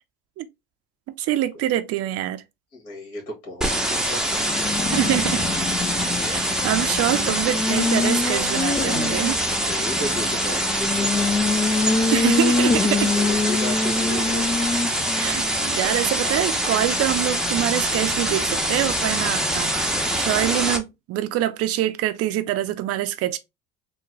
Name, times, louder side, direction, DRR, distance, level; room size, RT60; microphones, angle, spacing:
voice 1, 1.2-2.4 4.9-5.4 6.2-9.4 12.1-13.1 14.1-14.2 15.1-23.4, right 13 dB, 55° right, 0.6 m, -25 dB
voice 2, 2.7-4.4 9.6-11.3 13.1-14.4, left 1 dB, 55° left, 1.7 m, -34 dB
sound 1, 3.6-20.8, right 1 dB, ahead, 0.8 m, -24 dB
Race car auto racing, 4.2-20.5, left 4 dB, 15° left, 0.3 m, -27 dB
3.6 x 2.2 x 3.2 m
hypercardioid pair, 70°, 29 cm